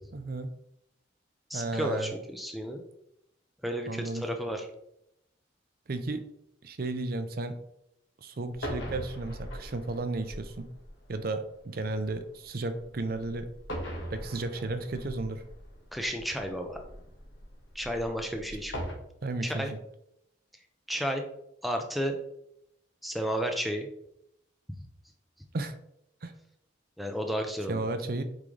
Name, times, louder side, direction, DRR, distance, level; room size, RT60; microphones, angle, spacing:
voice 1, 0.1-0.5 1.5-2.1 3.9-4.2 5.9-6.2 6.6-7.6 8.2-10.7 11.1-13.5 14.1-15.4 19.2-19.8 25.5-25.8 26.2-26.3 27.7-28.2, right 2 dB, 50° right, 8 dB, 0.5 m, -33 dB
voice 2, 1.5-2.8 3.6-4.7 15.9-16.8 17.7-18.9 19.4-19.7 20.9-21.2 21.6-22.2 23.0-23.9 27.0-27.9, equal, ahead, 3 dB, 0.6 m, -32 dB
sound 1, 8.5-18.9, equal, 75° left, 1.5 m, -42 dB
8.5 x 3.7 x 3.3 m, 0.78 s
head